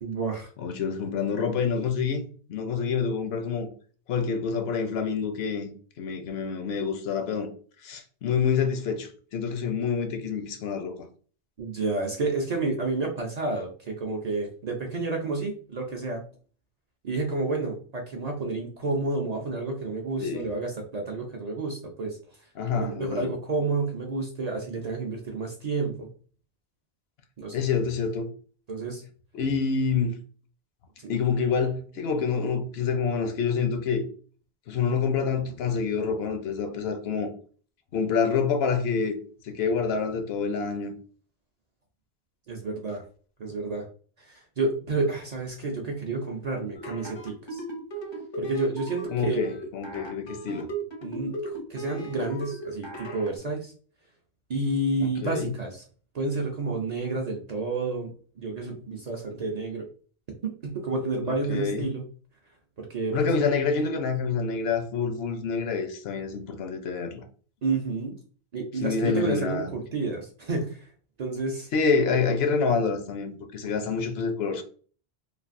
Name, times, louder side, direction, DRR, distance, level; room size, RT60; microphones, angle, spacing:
voice 1, 0.0-0.5 11.6-16.2 17.0-22.2 22.7-26.1 27.4-27.7 28.7-29.0 31.0-31.1 42.5-43.0 43.4-43.9 44.2-47.6 48.4-49.4 51.0-53.7 54.5-55.8 56.1-58.1 58.4-59.9 60.4-62.0 62.8-63.3 67.6-68.2 68.5-70.9 71.2-71.7, right 3 dB, 50° right, 0.5 m, -30 dB
voice 2, 0.6-2.2 2.5-3.7 4.1-5.7 6.0-7.5 7.8-11.1 20.2-20.5 22.6-23.3 27.5-28.3 29.3-30.2 31.1-34.1 34.7-37.3 37.9-39.2 39.4-40.9 49.1-50.7 55.0-55.5 61.3-61.9 63.1-67.2 68.8-69.7 71.7-74.6, left 5 dB, 75° left, 0.8 m, -27 dB
sound 1, 46.7-53.3, right 1 dB, 35° left, 0.5 m, -36 dB
3.2 x 2.4 x 2.5 m
omnidirectional pair, 1.1 m